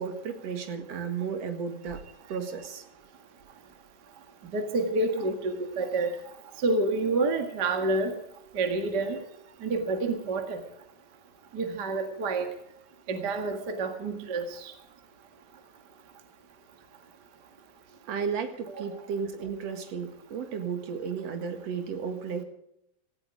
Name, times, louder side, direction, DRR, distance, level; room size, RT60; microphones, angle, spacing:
voice 1, 0.0-2.0 2.3-2.8 18.1-22.4, right 6 dB, 60° right, 7 dB, 2.8 m, -33 dB
voice 2, 4.5-6.2 6.6-8.1 8.5-9.2 9.6-10.6 11.5-12.5 13.1-14.7, right 3 dB, 40° right, 5 dB, 2.0 m, -28 dB
17.5 x 15.0 x 4.9 m, 0.76 s
omnidirectional pair, 3.4 m